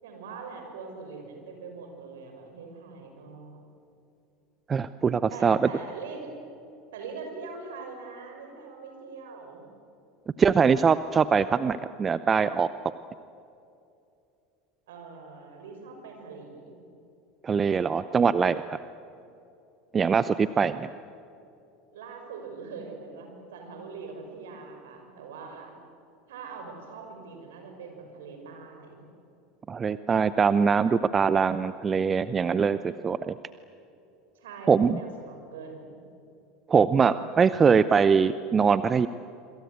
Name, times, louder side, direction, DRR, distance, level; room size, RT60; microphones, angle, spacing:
voice 1, 0.0-3.6 5.3-6.3 6.9-9.6 14.9-16.8 21.9-25.7 26.3-29.1 34.3-36.0, right 4 dB, 70° right, 3 dB, 6.2 m, -42 dB
voice 2, 4.7-5.6 10.4-12.7 17.4-18.8 19.9-20.9 29.7-33.3 34.7-35.0 36.7-39.1, right 6 dB, 25° right, 15 dB, 0.7 m, -22 dB
26.5 x 25.5 x 8.1 m, 2.6 s
figure-of-eight pair, 75°, 0 cm